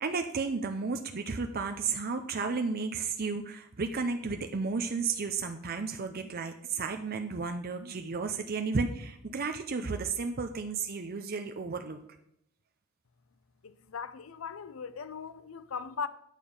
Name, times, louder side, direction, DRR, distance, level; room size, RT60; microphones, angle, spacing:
voice 1, 0.0-12.0, right 4 dB, 45° right, 0.6 m, -33 dB
voice 2, 13.6-16.1, left 6 dB, 70° left, 0.6 m, -39 dB
9.1 x 6.8 x 5.4 m
head